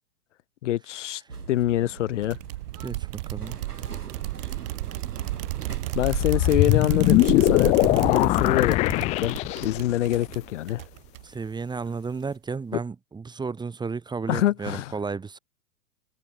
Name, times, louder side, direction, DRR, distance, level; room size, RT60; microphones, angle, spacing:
voice 1, 0.6-1.2 1.5-2.4 5.9-7.7 8.0-10.8 14.3-14.9, left 14 dB, 50° left, 2.0 m, -25 dB
sound 1, 1.3-7.0, right 4 dB, 80° right, 5.8 m, -42 dB
sound 2, 2.2-11.5, right 19 dB, 35° right, 1.0 m, -33 dB
voice 2, 2.8-3.6 11.2-15.4, right 4 dB, 10° right, 2.2 m, -33 dB
sound 3, 6.0-10.0, left 21 dB, 15° left, 0.5 m, -21 dB
figure-of-eight pair, 105°, 46 cm